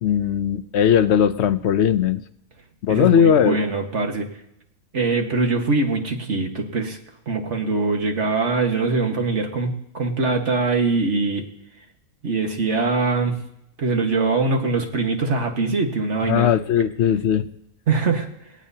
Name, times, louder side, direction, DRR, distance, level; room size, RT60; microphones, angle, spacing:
voice 1, 0.0-2.2 2.8-3.6 16.2-17.5, left 8 dB, 60° left, 12 dB, 0.8 m, -18 dB
voice 2, 2.9-4.3 4.9-7.0 7.3-11.5 12.2-13.4 13.8-16.5 17.9-18.3, right 3 dB, 50° right, 3 dB, 1.8 m, -22 dB
19.5 x 17.5 x 2.8 m, 0.81 s
omnidirectional pair, 1.5 m